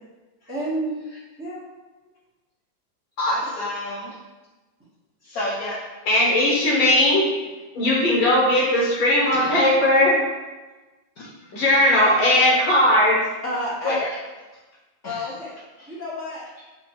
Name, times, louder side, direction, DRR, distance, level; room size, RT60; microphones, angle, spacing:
voice 1, 0.5-1.0 1.4-1.6 13.4-13.9 15.0-15.5 15.9-16.4, equal, 10° right, -9 dB, 0.8 m, -29 dB
voice 2, 3.2-4.2 5.2-5.8 9.3-9.6 11.2-11.3 13.8-14.1 15.0-15.3, left 1 dB, 60° left, -5 dB, 1.0 m, -28 dB
voice 3, 6.1-7.3 7.7-10.2 11.5-13.2, left 1 dB, 90° left, -5 dB, 2.1 m, -18 dB
6.9 x 2.6 x 2.9 m, 1.2 s
omnidirectional pair, 2.1 m